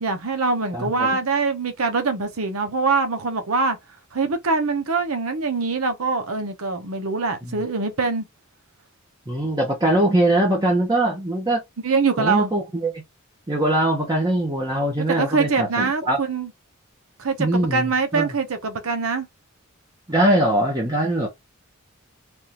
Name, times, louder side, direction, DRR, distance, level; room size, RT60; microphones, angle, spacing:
voice 1, 0.0-3.8 4.1-8.2 11.8-12.5 15.0-16.5 17.2-19.3, right 4 dB, 85° right, 0.8 m, -23 dB
voice 2, 0.7-1.2 7.4-7.6 9.3-11.6 12.2-12.9 13.5-16.2 17.4-18.3 20.1-21.3, right 1 dB, 20° right, 0.9 m, -22 dB
3.5 x 2.5 x 2.8 m
head